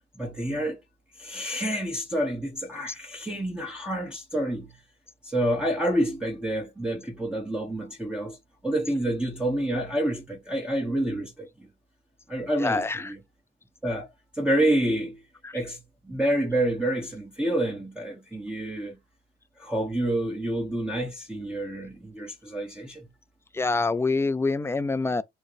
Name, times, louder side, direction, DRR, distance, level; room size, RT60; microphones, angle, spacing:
voice 1, 0.2-0.8 1.2-4.7 5.2-8.4 8.6-11.7 12.3-13.2 13.8-14.1 14.3-15.2 15.5-15.8 16.0-19.0 19.6-23.1, right 1 dB, 5° right, 1.0 m, -28 dB
voice 2, 12.6-13.1 15.4-15.6 23.5-25.2, left 3 dB, 10° left, 0.3 m, -26 dB
6.2 x 2.1 x 3.3 m
cardioid pair, 85°, 21 cm